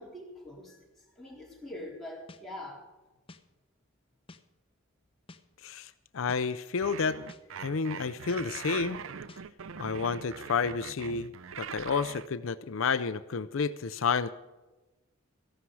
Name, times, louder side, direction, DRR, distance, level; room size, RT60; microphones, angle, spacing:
voice 1, 0.0-2.8, left 1 dB, ahead, -5 dB, 3.9 m, -44 dB
sound 1, 2.3-2.4 3.3-3.4 4.3-4.4 5.3-5.4 6.3-6.4 7.3-7.4 8.3-8.4 9.3-9.4, left 3 dB, 25° left, 0.7 m, -50 dB
voice 2, 5.6-7.2 7.6-9.0 9.8-11.3 11.6-14.3, left 5 dB, 75° left, 13 dB, 0.5 m, -30 dB
sound 2, 6.8-12.3, right 7 dB, 75° right, 0.5 m, -42 dB
14.5 x 12.0 x 4.8 m, 1.1 s
head